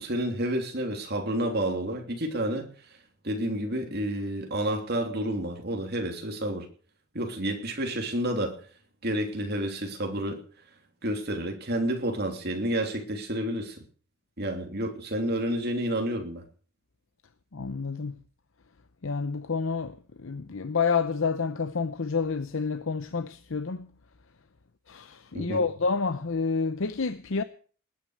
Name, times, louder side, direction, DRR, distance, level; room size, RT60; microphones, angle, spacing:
voice 1, 0.0-2.7 3.2-6.7 7.1-8.6 9.0-10.4 11.0-13.8 14.4-16.4 25.3-25.6, right 1 dB, 45° right, 3.1 m, -30 dB
voice 2, 17.5-18.1 19.0-23.9 24.9-27.4, left 5 dB, 60° left, 0.7 m, -29 dB
20.0 x 9.4 x 6.4 m
head